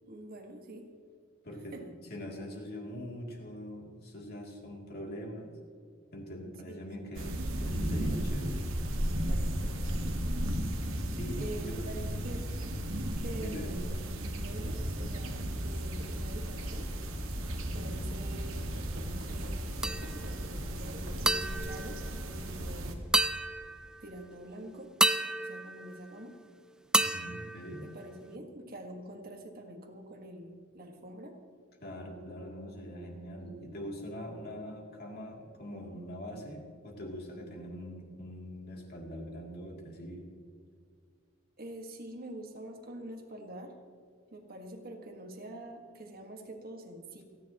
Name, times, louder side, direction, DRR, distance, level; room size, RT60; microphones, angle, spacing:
voice 1, 0.0-0.9 1.7-1.8 6.7-7.1 9.0-10.2 11.4-12.5 13.2-13.8 14.2-16.9 17.7-18.6 18.9-19.6 20.1-23.0 24.0-24.9 25.4-26.4 27.8-31.4 41.6-43.8 44.3-47.2, right 1 dB, 50° right, 3 dB, 1.7 m, -46 dB
voice 2, 1.4-1.8 2.1-5.5 6.1-8.6 11.2-11.9 13.3-13.9 26.9-27.8 31.8-40.3, equal, 50° left, -1 dB, 2.9 m, -42 dB
sound 1, 7.1-22.9, right 1 dB, 85° right, 1.7 m, -34 dB
sound 2, 19.8-20.4 21.3-22.7 23.1-24.2 25.0-26.5 26.9-28.4, right 1 dB, 5° right, 0.4 m, -31 dB
28.5 x 10.5 x 3.0 m, 2.2 s
head